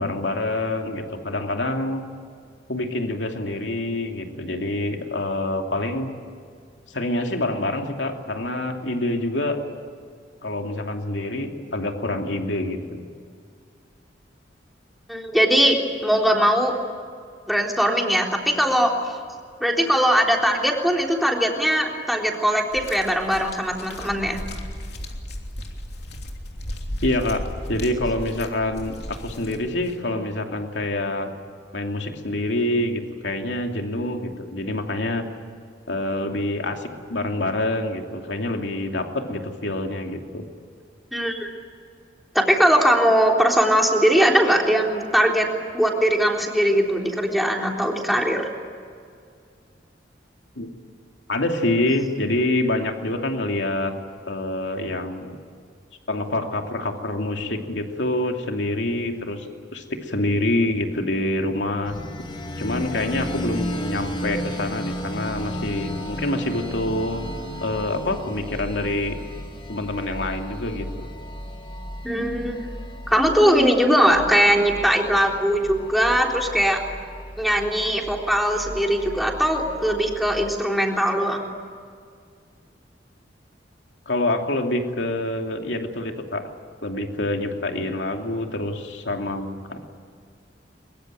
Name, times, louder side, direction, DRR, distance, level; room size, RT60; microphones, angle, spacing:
voice 1, 0.0-2.0 2.7-6.1 6.9-9.6 10.4-13.0 27.0-27.4 27.7-31.3 31.7-35.3 35.9-40.4 50.6-50.7 51.3-53.9 54.3-55.4 56.1-61.9 62.6-67.3 67.6-69.2 69.7-71.1 84.1-86.5 86.8-89.8, left 1 dB, 90° left, 3 dB, 2.8 m, -26 dB
voice 2, 15.1-15.8 16.0-16.7 17.5-19.1 19.6-24.4 41.1-41.5 42.3-45.5 45.7-48.5 72.0-72.7 73.1-76.8 77.4-81.5, equal, ahead, 0 dB, 3.6 m, -20 dB
sound 1, 22.7-30.0 30.8-30.9, left 1 dB, 65° left, 3.2 m, -35 dB
sound 2, 61.8-80.5, equal, 30° left, 2.4 m, -34 dB
23.0 x 22.5 x 9.1 m, 2.2 s
head